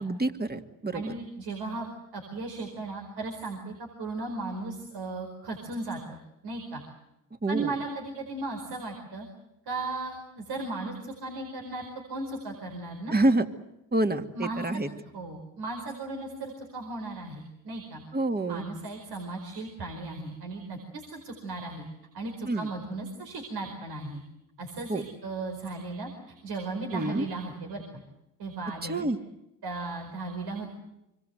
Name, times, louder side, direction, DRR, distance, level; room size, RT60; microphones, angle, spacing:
voice 1, 0.0-1.1 7.4-7.7 13.1-13.5 13.9-14.9 18.1-18.6 22.5-22.7 24.9-25.0 26.9-27.3 28.8-29.2, right 2 dB, 25° right, 7 dB, 2.4 m, -27 dB
voice 2, 0.9-1.9 2.1-6.8 7.5-9.3 9.7-13.1 14.3-14.8 15.1-18.0 18.5-21.9 22.1-24.2 24.6-28.0 28.4-29.1 29.6-30.8, right 3 dB, 75° right, 2 dB, 4.9 m, -36 dB
25.5 x 24.5 x 8.0 m, 0.88 s
supercardioid pair, 60°, 39 cm